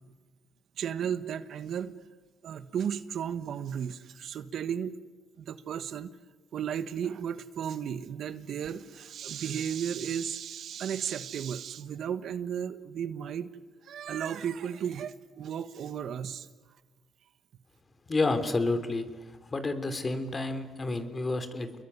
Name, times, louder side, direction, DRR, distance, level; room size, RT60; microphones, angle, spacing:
voice 1, 0.8-1.9 2.4-5.0 5.4-6.1 6.5-13.5 13.8-16.5, right 8 dB, 65° right, 12 dB, 1.3 m, -34 dB
voice 2, 18.1-19.1 19.5-21.7, left 2 dB, 30° left, 9 dB, 3.2 m, -29 dB
28.5 x 21.5 x 9.6 m, 1.3 s
cardioid pair, 90°, 0 cm